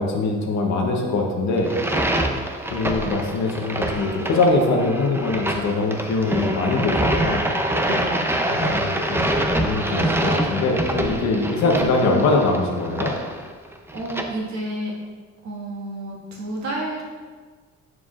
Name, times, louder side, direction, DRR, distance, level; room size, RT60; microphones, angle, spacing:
voice 1, 0.0-1.8 2.7-7.5 8.5-13.1, left 3 dB, 65° left, 0 dB, 1.0 m, -22 dB
sound 1, 1.6-14.2, right 1 dB, 10° right, 0.6 m, -25 dB
voice 2, 7.9-8.4 13.9-14.9 15.4-17.0, right 1 dB, 65° right, -4 dB, 1.8 m, -30 dB
9.4 x 4.7 x 2.5 m, 1.5 s
cardioid pair, 90°, 30 cm